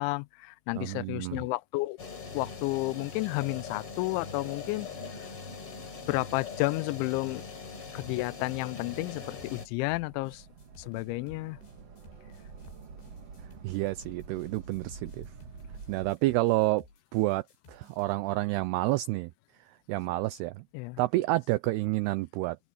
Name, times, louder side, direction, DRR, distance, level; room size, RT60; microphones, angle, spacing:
voice 1, 0.0-2.0 2.3-4.9 6.1-7.4 7.9-10.4 10.8-11.6 20.7-21.0, left 23 dB, 85° left, 2.9 m, -31 dB
voice 2, 0.8-1.4 13.6-15.3 15.9-16.8 17.1-17.4 17.7-19.3 19.9-20.6 21.0-22.6, right 18 dB, 90° right, 2.3 m, -29 dB
sound 1, 2.0-9.7, left 5 dB, 30° left, 5.2 m, -41 dB
sound 2, 7.5-18.2, left 3 dB, 70° left, 9.2 m, -57 dB
sound 3, 8.9-16.1, right 5 dB, 45° right, 2.6 m, -48 dB
omnidirectional pair, 5.3 m